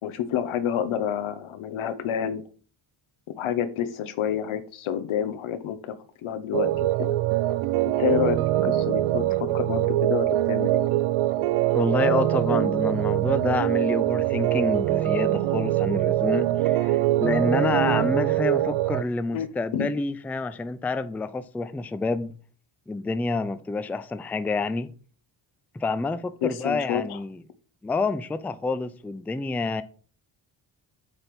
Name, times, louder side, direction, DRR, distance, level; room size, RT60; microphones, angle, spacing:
voice 1, 0.0-2.4 3.4-5.9 6.2-6.7 7.0-7.2 7.9-10.9 19.3-19.9 26.4-27.2, left 9 dB, 85° left, 1.0 m, -29 dB
sound 1, 6.5-19.0, right 14 dB, 85° right, 0.6 m, -23 dB
voice 2, 11.7-22.3 22.9-24.9 25.7-27.4 27.8-29.8, left 3 dB, 5° left, 0.3 m, -28 dB
8.0 x 3.5 x 5.9 m
cardioid pair, 105°, 48 cm